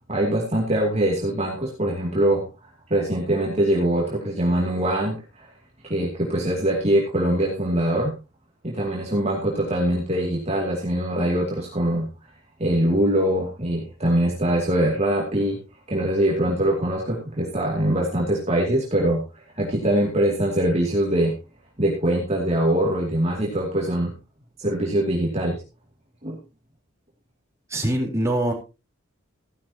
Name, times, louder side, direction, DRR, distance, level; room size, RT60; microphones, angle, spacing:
voice 1, 0.1-2.4 2.9-5.5 5.8-8.1 8.6-12.1 12.6-15.6 15.9-19.2 19.5-21.3 21.8-24.1 24.6-25.6 26.2-26.4, right 1 dB, 35° right, -2 dB, 2.5 m, -23 dB
voice 2, 27.7-28.5, right 1 dB, 15° right, -1 dB, 3.8 m, -23 dB
15.5 x 11.5 x 2.9 m, 0.30 s
head